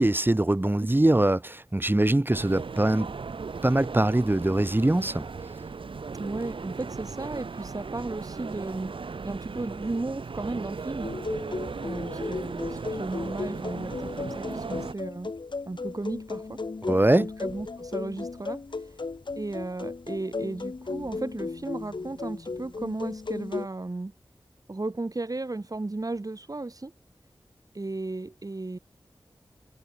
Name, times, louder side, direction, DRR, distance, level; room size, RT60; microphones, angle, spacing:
voice 1, 0.0-3.1 3.6-5.3 16.9-17.3, right 1 dB, 25° right, 2.5 m, -22 dB
sound 1, 2.3-14.9, right 4 dB, 85° right, 2.8 m, -37 dB
voice 2, 6.1-11.1 11.8-15.3 15.7-16.6 17.2-19.0 19.4-24.1 24.7-26.9 27.7-28.8, right 2 dB, 45° right, 3.8 m, -35 dB
sound 2, 11.0-23.7, left 3 dB, 65° left, 4.0 m, -35 dB
cardioid pair, 45°, 9 cm